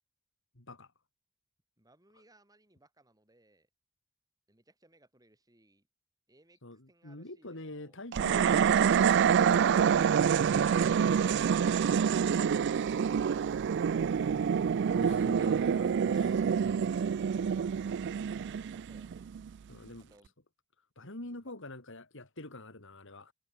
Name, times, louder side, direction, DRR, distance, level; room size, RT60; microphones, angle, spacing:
voice 1, 0.6-0.9 6.6-10.3 11.3-11.4 14.9-16.4 19.7-20.1 21.0-23.3, left 2 dB, 60° left, 3.5 m, -46 dB
voice 2, 1.8-3.7 4.5-5.9 6.3-8.0 20.1-20.3 21.4-21.5, right 1 dB, 15° right, 5.9 m, -64 dB
sound 1, 8.1-19.5, right 7 dB, 55° right, 0.3 m, -27 dB
head